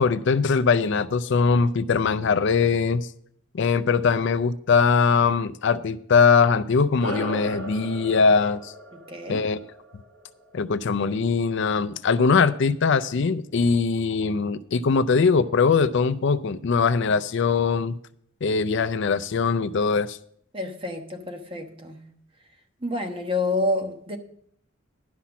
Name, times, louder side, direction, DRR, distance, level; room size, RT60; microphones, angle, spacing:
voice 1, 0.0-3.1 3.5-8.7 9.3-9.6 10.5-17.9 18.4-20.2, left 5 dB, 60° left, 0.4 m, -21 dB
sound 1, 7.0-11.8, equal, 5° left, 4.0 m, -38 dB
voice 2, 8.9-9.4 20.5-22.0 22.8-24.2, left 2 dB, 25° right, 1.2 m, -28 dB
11.5 x 5.8 x 7.1 m
head